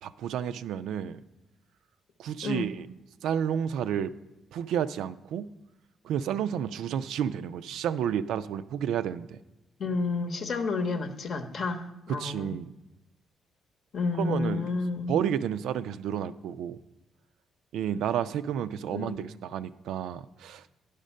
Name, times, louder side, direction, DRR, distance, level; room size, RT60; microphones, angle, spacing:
voice 1, 0.0-1.2 2.2-2.9 3.2-4.1 4.5-5.5 6.0-9.4 12.1-12.7 14.2-14.7 15.1-16.8 17.7-20.7, right 9 dB, 80° right, 13 dB, 0.3 m, -31 dB
voice 2, 9.8-12.6 13.9-15.2 18.9-19.2, left 3 dB, 60° left, 6 dB, 0.8 m, -30 dB
10.0 x 5.1 x 5.4 m, 0.97 s
cardioid pair, 90°, 0 cm